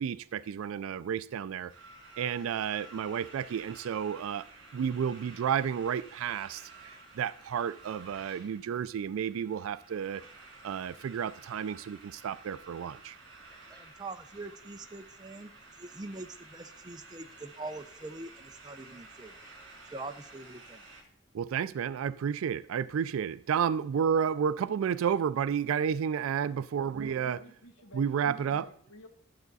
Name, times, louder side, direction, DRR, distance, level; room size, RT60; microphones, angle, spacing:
voice 1, 0.0-1.7 2.2-4.5 4.7-6.7 7.1-10.2 10.6-13.2 21.3-27.4 27.9-28.7, right 7 dB, 85° right, 16 dB, 0.3 m, -31 dB
sound 1, 1.7-21.0, right 3 dB, 55° right, 2.8 m, -52 dB
voice 2, 13.7-15.5 15.8-19.4 19.9-20.9, right 2 dB, 20° right, 7 dB, 0.5 m, -43 dB
voice 3, 27.1-29.1, left 1 dB, 75° left, 4 dB, 1.1 m, -53 dB
11.5 x 7.1 x 4.0 m, 0.62 s
head